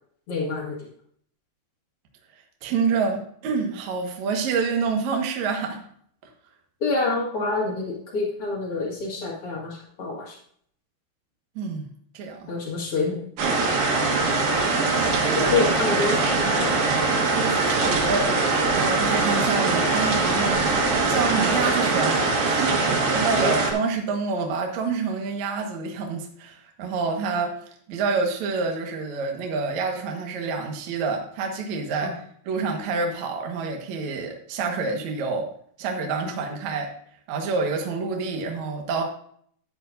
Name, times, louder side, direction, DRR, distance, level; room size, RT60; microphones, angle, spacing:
voice 1, 0.3-0.9 6.8-10.3 12.5-13.2 14.9-15.1 15.3-16.8 23.4-23.5 32.0-32.1, left 3 dB, 85° left, -3 dB, 1.2 m, -27 dB
voice 2, 2.6-5.8 11.5-11.8 12.1-12.5 14.9-15.9 17.0-18.3 18.8-20.6 21.1-27.6 27.9-35.5 35.8-36.9 37.3-39.0, right 4 dB, 90° right, 2 dB, 1.6 m, -28 dB
sound 1, 13.4-23.7, right 3 dB, 60° right, 3.3 m, -22 dB
12.0 x 9.7 x 2.6 m, 0.62 s
omnidirectional pair, 5.7 m